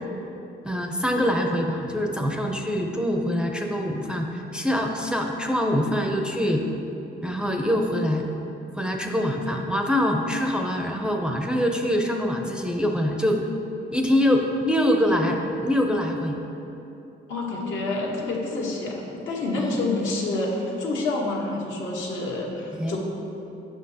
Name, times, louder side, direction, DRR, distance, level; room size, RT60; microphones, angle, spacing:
voice 1, 0.6-6.6 7.2-8.2 8.8-13.5 13.9-16.4 19.6-19.7 22.8-23.0, equal, 5° right, 2 dB, 0.5 m, -24 dB
voice 2, 17.3-23.0, left 2 dB, 75° left, -2 dB, 1.1 m, -28 dB
7.7 x 5.7 x 2.8 m, 3.0 s
cardioid pair, 90°, 20 cm